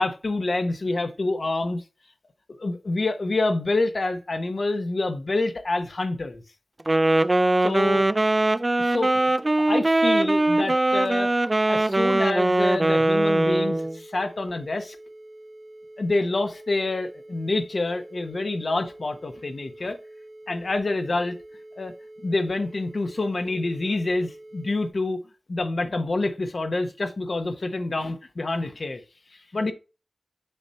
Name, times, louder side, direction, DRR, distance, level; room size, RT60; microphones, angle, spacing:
voice 1, 0.0-1.8 2.6-6.4 7.6-8.0 8.8-9.3 9.7-11.3 11.7-15.0 16.0-20.0 20.5-21.3 21.8-21.9 22.2-25.2 25.5-29.0 29.5-29.7, left 2 dB, 75° left, 1.1 m, -27 dB
Wind instrument woodwind instrument, 6.8-14.0, right 2 dB, 35° right, 0.4 m, -21 dB
sound 1, 13.1-24.9, right 1 dB, 70° right, 1.2 m, -46 dB
6.9 x 4.3 x 4.4 m
wide cardioid pair, 55°, 0 cm